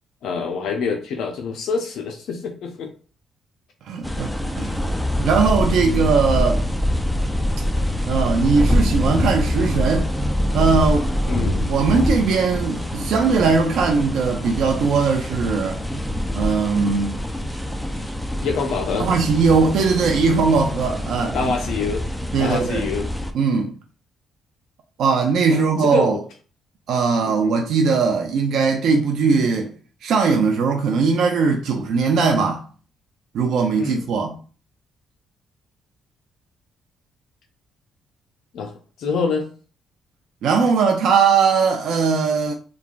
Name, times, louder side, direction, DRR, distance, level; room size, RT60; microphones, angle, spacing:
voice 1, 0.2-2.9 5.8-6.0 11.3-11.7 18.4-19.1 21.3-22.0 22.4-23.1 25.5-26.2 27.2-27.5 33.8-34.1 38.5-38.7 39.0-39.5, left 5 dB, 75° left, 0.4 m, -26 dB
voice 2, 3.9-4.8 5.2-6.6 8.1-10.1 10.5-11.1 11.6-15.8 16.4-17.2 19.0-21.5 22.3-22.9 23.3-23.7 25.0-26.2 26.9-29.7 30.0-32.6 33.3-34.3 40.4-42.5, right 5 dB, 75° right, 0.4 m, -19 dB
sound 1, 4.0-23.3, left 1 dB, 5° left, 0.4 m, -24 dB
3.0 x 2.2 x 2.4 m
cardioid pair, 90°, 0 cm